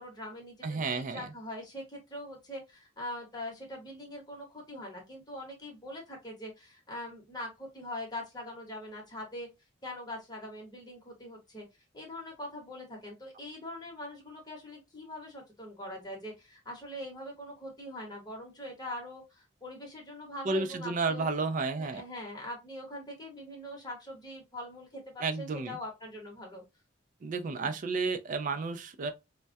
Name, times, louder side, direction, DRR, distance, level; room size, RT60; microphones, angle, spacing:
voice 1, 0.0-9.5 9.8-11.6 11.9-21.3 21.8-26.6 27.6-27.7, left 1 dB, 20° left, 1.0 m, -42 dB
voice 2, 0.6-1.3 20.4-22.0 25.2-25.8 27.2-29.1, right 4 dB, 45° right, 0.3 m, -32 dB
2.2 x 2.1 x 2.6 m
head